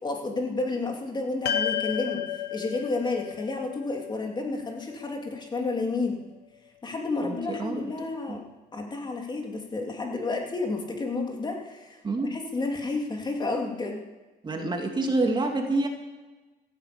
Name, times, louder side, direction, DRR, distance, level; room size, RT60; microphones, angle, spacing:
voice 1, 0.0-6.2 6.8-8.4 8.7-14.0, left 3 dB, 25° left, 2 dB, 3.2 m, -31 dB
sound 1, 1.4-5.9, left 9 dB, 70° left, 1.4 m, -33 dB
voice 2, 7.2-7.9 8.3-8.4 12.0-12.3 14.4-15.9, right 2 dB, 25° right, 3 dB, 2.7 m, -27 dB
15.5 x 10.5 x 8.8 m, 1.2 s
cardioid pair, 110°, 17 cm